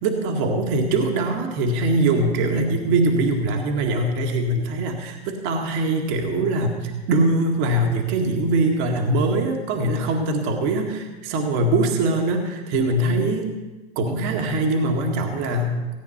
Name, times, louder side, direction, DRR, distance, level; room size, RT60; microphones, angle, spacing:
voice 1, 0.0-13.6 14.0-15.9, right 2 dB, 40° right, 3 dB, 1.9 m, -22 dB
17.0 x 9.2 x 5.8 m, 1.2 s
hypercardioid pair, 110°, 32 cm